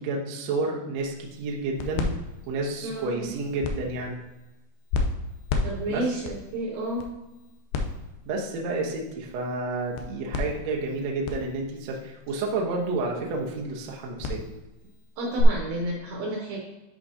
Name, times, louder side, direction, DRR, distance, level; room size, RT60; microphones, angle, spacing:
voice 1, 0.0-2.1 2.5-4.2 5.9-6.0 8.3-14.4, right 3 dB, 90° right, -2 dB, 1.5 m, -30 dB
sound 1, 1.0-15.4, left 4 dB, 85° left, 2.1 m, -35 dB
voice 2, 2.8-3.3 5.6-7.1 15.2-16.6, right 1 dB, 70° right, -1 dB, 2.4 m, -31 dB
10.5 x 4.9 x 2.7 m, 1.0 s
omnidirectional pair, 4.9 m